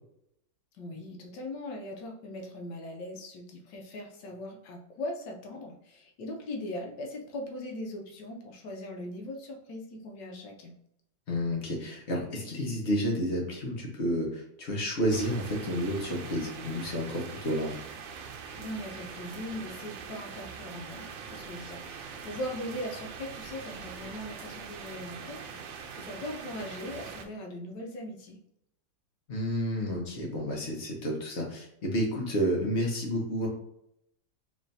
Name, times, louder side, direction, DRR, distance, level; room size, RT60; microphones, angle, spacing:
voice 1, 0.7-10.8 18.6-28.4, left 1 dB, 70° left, 1 dB, 1.3 m, -40 dB
voice 2, 11.3-17.8 29.3-33.5, equal, 45° left, -1 dB, 1.1 m, -30 dB
sound 1, 15.1-27.2, right 6 dB, 90° right, 1.4 m, -43 dB
3.7 x 3.2 x 2.6 m, 0.75 s
omnidirectional pair, 2.1 m